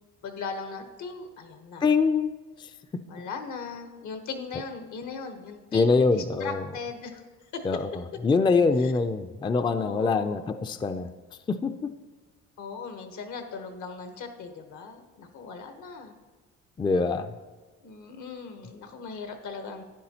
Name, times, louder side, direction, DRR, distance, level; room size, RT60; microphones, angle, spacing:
voice 1, 0.2-1.9 3.1-7.2 7.5-8.0 8.8-8.9 9.8-10.5 12.6-16.1 17.8-19.8, left 5 dB, 75° left, 6 dB, 1.1 m, -38 dB
voice 2, 1.8-2.3 2.6-2.7 5.7-6.6 7.6-7.9 8.2-11.1 11.5-11.9 16.8-17.3, left 4 dB, 15° left, 9 dB, 0.3 m, -24 dB
11.5 x 9.8 x 2.9 m, 1.3 s
cardioid pair, 90°, 30 cm